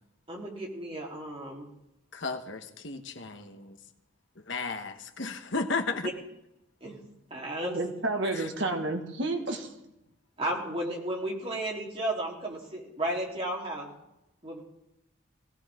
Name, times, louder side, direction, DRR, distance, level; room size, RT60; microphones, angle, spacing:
voice 1, 0.3-1.7 6.0-6.1 6.8-7.0 7.3-7.8 10.4-13.9 14.4-14.6, right 1 dB, 30° right, -2 dB, 3.8 m, -33 dB
voice 2, 2.1-3.8 4.5-6.1 8.3-8.4, left 4 dB, 65° left, 6 dB, 1.3 m, -34 dB
voice 3, 7.7-9.7, right 2 dB, 65° right, 3 dB, 2.0 m, -30 dB
19.5 x 17.5 x 3.8 m, 0.88 s
head